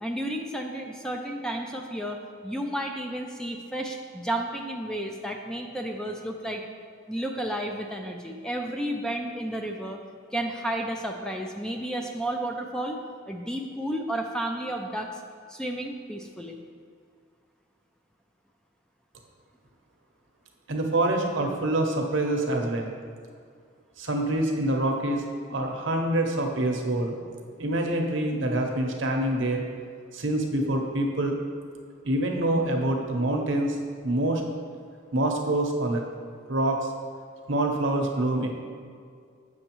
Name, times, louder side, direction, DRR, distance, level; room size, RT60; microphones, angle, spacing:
voice 1, 0.0-6.6 7.1-10.0 10.3-13.0 13.3-15.1 15.5-16.6, right 1 dB, 5° left, 2 dB, 0.4 m, -32 dB
voice 2, 20.7-22.9 24.0-25.2 25.5-27.2 27.6-29.6 30.1-31.4 32.0-33.8 34.0-34.4 35.1-36.0 36.5-36.8 37.5-38.5, right 1 dB, 65° right, 2 dB, 0.8 m, -26 dB
7.9 x 6.3 x 3.0 m, 2.2 s
head